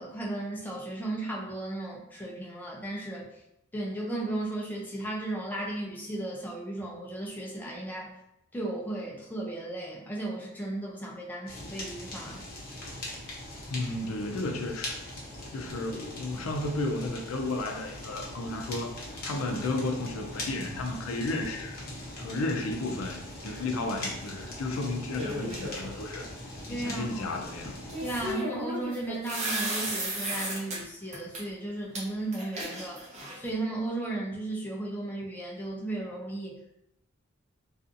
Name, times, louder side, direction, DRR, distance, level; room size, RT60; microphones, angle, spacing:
voice 1, 0.0-3.3 3.7-8.1 8.5-12.4 26.7-27.3 28.0-33.1 33.3-36.6, right 2 dB, 10° left, -3 dB, 0.4 m, -35 dB
Fire, 11.5-28.3, left 1 dB, 45° left, 0.7 m, -41 dB
voice 2, 13.7-15.0 15.5-18.9 19.2-21.8 22.2-26.3 26.7-27.7, left 2 dB, 80° left, 3 dB, 0.4 m, -33 dB
sound 1, 25.2-25.9 27.9-30.8 31.1-31.4 31.9-32.0 32.3-33.5, right 1 dB, 35° right, 0.6 m, -34 dB
2.6 x 2.4 x 2.5 m, 0.83 s
head